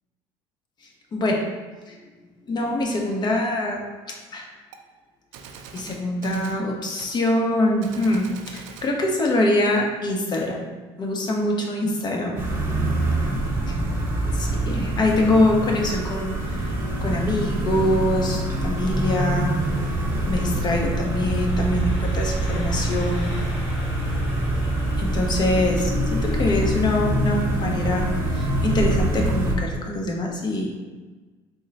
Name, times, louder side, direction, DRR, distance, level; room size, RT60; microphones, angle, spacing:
voice 1, 1.1-1.4 1.9-2.1 2.5-3.8 4.1-4.5 5.7-8.3 8.5-10.7 11.0-12.4 13.7-13.8 14.2-19.6 19.8-19.9 20.2-23.3 25.0-30.8, left 1 dB, 35° left, 0 dB, 0.8 m, -24 dB
Gunshot gunfire, 4.7-4.8 5.3-6.6 7.0-7.2 7.8-8.9, right 6 dB, 75° right, 0.4 m, -42 dB
sound 1, 12.4-29.5, right 1 dB, 20° right, 0.9 m, -25 dB
Engine, 14.4-28.4, left 1 dB, 55° left, 1.1 m, -45 dB
3.6 x 2.1 x 4.0 m, 1.3 s
supercardioid pair, 95°, 12 cm